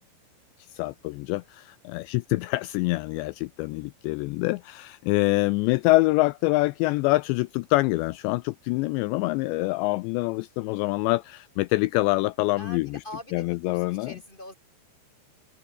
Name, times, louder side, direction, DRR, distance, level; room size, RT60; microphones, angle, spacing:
voice 1, 0.6-13.0 13.3-14.1, left 22 dB, 90° left, 2.5 m, -25 dB
voice 2, 12.6-14.5, left 1 dB, 10° left, 6.5 m, -43 dB
omnidirectional pair, 5.6 m